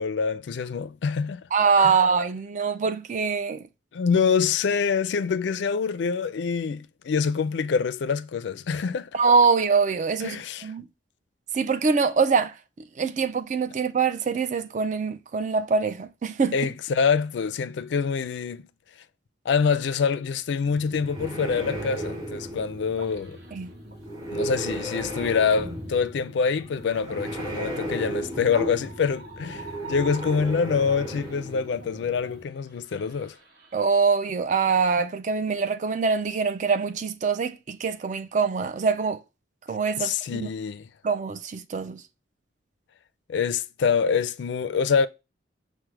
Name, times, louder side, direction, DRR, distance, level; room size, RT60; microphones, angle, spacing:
voice 1, 0.0-1.5 1.8-1.9 3.9-9.1 10.2-10.7 16.5-18.7 19.5-23.4 24.3-33.3 40.0-40.9 43.3-45.1, left 6 dB, 65° left, 0.3 m, -25 dB
voice 2, 1.5-3.6 9.1-10.9 11.5-16.6 23.5-23.7 33.7-39.2 39.7-40.5 41.0-42.0, right 5 dB, 40° right, 0.4 m, -24 dB
sound 1, 20.6-32.4, right 1 dB, 20° right, 1.0 m, -35 dB
sound 2, 23.0-30.7 31.0-34.0, right 3 dB, 65° right, 1.1 m, -46 dB
5.9 x 2.1 x 3.2 m
head